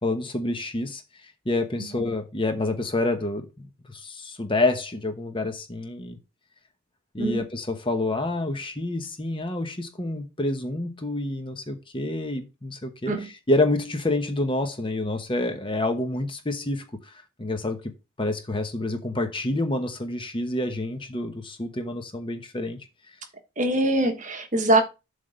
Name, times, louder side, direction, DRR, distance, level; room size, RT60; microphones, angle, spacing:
voice 1, 0.0-1.0 1.4-6.2 7.1-17.8 18.2-22.8, left 2 dB, 25° left, 1.0 m, -28 dB
voice 2, 23.6-24.8, right 1 dB, 35° right, 1.2 m, -23 dB
7.6 x 3.6 x 6.5 m
head